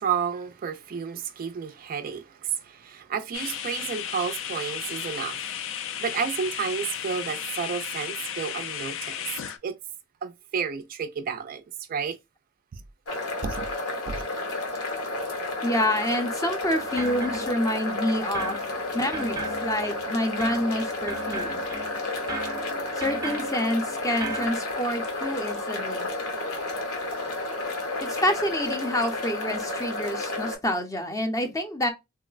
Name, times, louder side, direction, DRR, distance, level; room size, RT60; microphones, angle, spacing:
voice 1, 0.0-2.2 2.6-5.4 6.0-9.3 9.6-9.7 10.2-11.6 11.9-12.2 13.4-13.7 14.1-14.2, right 6 dB, 40° right, 0.3 m, -31 dB
sound 1, 3.3-9.6, left 9 dB, 65° left, 0.4 m, -34 dB
sound 2, 13.1-30.6, left 2 dB, 80° left, 1.0 m, -31 dB
voice 2, 15.6-18.6 18.9-21.6 23.0-26.1 28.0-31.9, left 1 dB, 15° left, 0.5 m, -27 dB
sound 3, 16.7-18.0 18.3-24.5, right 3 dB, 15° right, 0.7 m, -38 dB
3.7 x 2.1 x 2.3 m
head